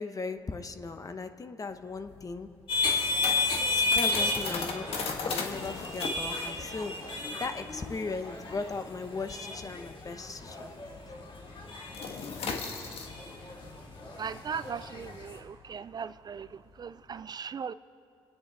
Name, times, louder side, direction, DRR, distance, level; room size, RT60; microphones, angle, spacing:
voice 1, 0.0-2.5 3.9-4.9 5.2-10.7 11.1-11.2, left 4 dB, 35° left, 8 dB, 1.0 m, -37 dB
sound 1, 1.7-10.7 10.9-11.2 11.5-17.2, left 4 dB, 75° left, 1.6 m, -38 dB
sound 2, 2.7-15.4, left 3 dB, 60° left, 2.5 m, -33 dB
voice 2, 14.2-17.7, right 6 dB, 45° right, 15 dB, 0.4 m, -38 dB
26.5 x 9.6 x 4.2 m, 2.5 s
cardioid pair, 75°, 10 cm